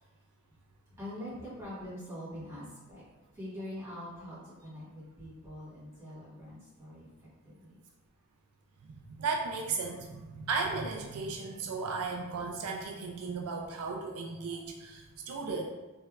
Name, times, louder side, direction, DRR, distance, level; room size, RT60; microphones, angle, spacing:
voice 1, 1.0-3.1 3.3-7.8, left 1 dB, 15° right, -10 dB, 1.4 m, -44 dB
voice 2, 8.9-15.7, right 4 dB, 80° right, 2 dB, 0.4 m, -35 dB
3.3 x 3.1 x 2.3 m, 1.2 s
head